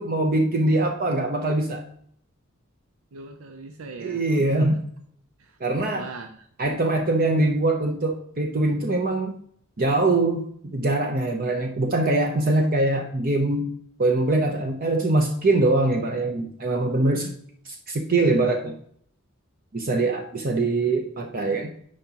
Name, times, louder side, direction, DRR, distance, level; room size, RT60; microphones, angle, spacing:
voice 1, 0.0-1.8 4.0-4.8 5.6-6.1 6.6-9.4 9.8-13.7 14.0-17.3 17.7-18.7 19.7-21.7, right 2 dB, 45° right, 4 dB, 0.7 m, -23 dB
voice 2, 3.1-4.5 5.4-5.6 5.9-6.4, right 3 dB, 90° right, 6 dB, 0.6 m, -40 dB
9.3 x 5.0 x 2.9 m, 0.63 s
head